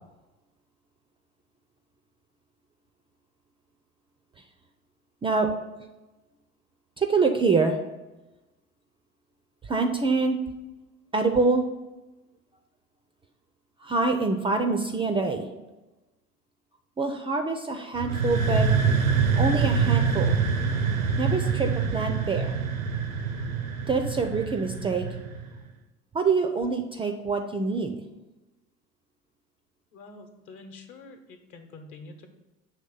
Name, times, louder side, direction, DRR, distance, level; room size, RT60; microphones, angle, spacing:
voice 1, 7.0-7.8 9.7-10.4 11.1-11.6 13.8-15.5 17.0-18.7 19.4-20.4 21.2-22.5 23.9-25.0 26.1-28.0, right 4 dB, 15° right, 5 dB, 0.4 m, -25 dB
sound 1, 17.9-25.6, right 5 dB, 85° right, 0.6 m, -25 dB
voice 2, 29.9-32.3, left 3 dB, 50° left, 6 dB, 1.1 m, -46 dB
6.4 x 3.1 x 5.6 m, 1.1 s
figure-of-eight pair, 70°, 40 cm